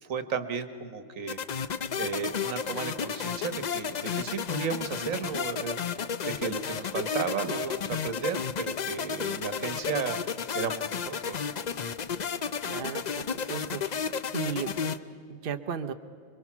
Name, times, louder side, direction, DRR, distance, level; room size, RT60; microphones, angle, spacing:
voice 1, 0.0-1.4 2.0-11.5, right 6 dB, 70° right, 9 dB, 1.5 m, -34 dB
sound 1, 1.3-15.0, left 6 dB, 50° left, 0.5 m, -32 dB
voice 2, 12.7-13.8 14.3-14.7 15.3-15.9, right 7 dB, 50° right, 6 dB, 0.8 m, -35 dB
26.5 x 22.5 x 6.0 m, 2.3 s
omnidirectional pair, 1.5 m